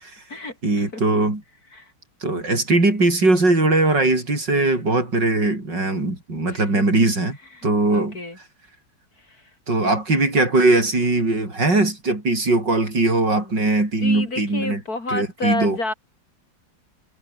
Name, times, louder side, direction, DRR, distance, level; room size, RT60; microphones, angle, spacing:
voice 1, 0.6-1.4 2.2-7.4 7.6-8.2 9.7-14.8 15.1-15.8, right 2 dB, 65° right, 7.2 m, -20 dB
voice 2, 6.5-6.8 7.5-8.4 9.3-9.4 13.3-15.9, left 2 dB, 50° left, 5.3 m, -31 dB
omnidirectional pair, 2.1 m